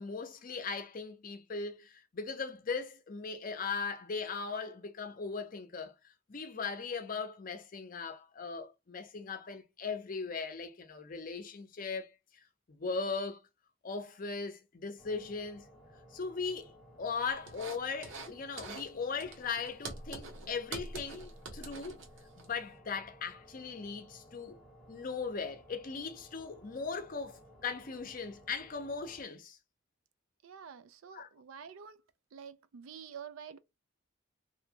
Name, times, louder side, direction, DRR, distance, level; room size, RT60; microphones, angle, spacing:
voice 1, 0.0-5.9 6.3-12.1 12.7-13.4 13.8-15.7 16.1-16.7 17.0-22.0 22.4-24.6 24.9-29.6 31.1-31.3, left 5 dB, 40° left, 0.5 m, -38 dB
sound 1, 15.0-29.2, equal, ahead, 0.8 m, -58 dB
sound 2, 17.5-18.3 18.6-18.9 19.2-22.5, right 3 dB, 70° right, 0.9 m, -45 dB
voice 2, 30.4-32.0 32.3-33.6, right 7 dB, 85° right, 0.4 m, -48 dB
2.7 x 2.2 x 2.7 m
head